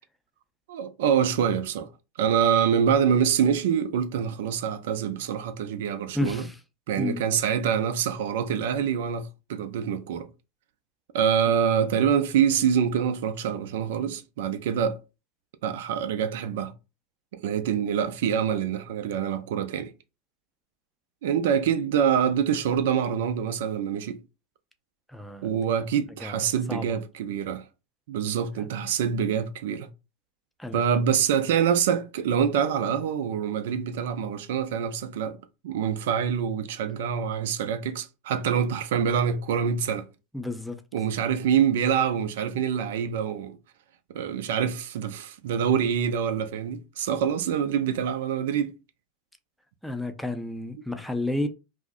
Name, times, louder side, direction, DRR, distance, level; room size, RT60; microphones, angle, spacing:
voice 1, 0.7-1.9 2.2-6.5 6.9-10.3 11.1-15.0 15.6-16.7 17.3-19.9 21.2-24.2 25.4-27.6 28.1-29.9 30.7-35.4 35.6-40.1 40.9-43.6 44.1-48.7, right 8 dB, 70° right, 0.4 m, -25 dB
voice 2, 6.1-6.5 7.0-7.2 25.1-25.5 26.2-26.4 26.7-26.9 28.6-28.7 30.6-30.8 40.3-40.8 49.8-51.5, left 1 dB, ahead, 0.5 m, -31 dB
2.5 x 2.1 x 3.7 m
hypercardioid pair, 90°, 0 cm